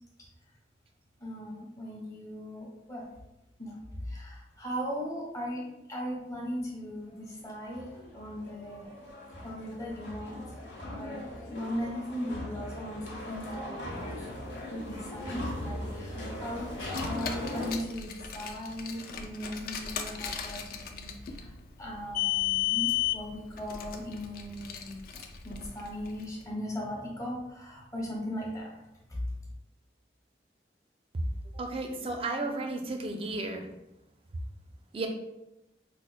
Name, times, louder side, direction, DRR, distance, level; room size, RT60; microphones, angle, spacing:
voice 1, 1.2-3.0 3.6-8.9 9.4-10.4 10.9-11.2 11.5-14.3 14.7-21.5 21.8-25.0 25.4-28.8 29.1-29.4, equal, 20° left, -2 dB, 0.7 m, -38 dB
sound 1, 7.4-17.7, left 1 dB, 80° left, 0.8 m, -39 dB
Car, 16.7-26.2, left 12 dB, 50° left, 0.3 m, -34 dB
voice 2, 31.5-33.7 34.9-35.1, right 2 dB, 30° right, 3 dB, 0.4 m, -33 dB
4.9 x 2.0 x 2.4 m, 0.95 s
head